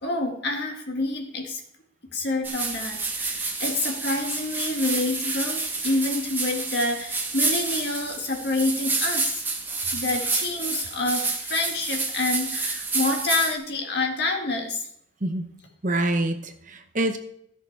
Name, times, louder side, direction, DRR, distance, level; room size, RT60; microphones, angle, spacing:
voice 1, 0.0-1.6 2.1-9.5 9.9-14.9, left 2 dB, 55° left, 2 dB, 1.9 m, -27 dB
sound 1, 2.4-13.6, right 3 dB, 10° right, 1.3 m, -29 dB
voice 2, 15.8-17.2, right 1 dB, 40° right, 7 dB, 0.9 m, -26 dB
14.0 x 6.6 x 4.6 m, 0.71 s
head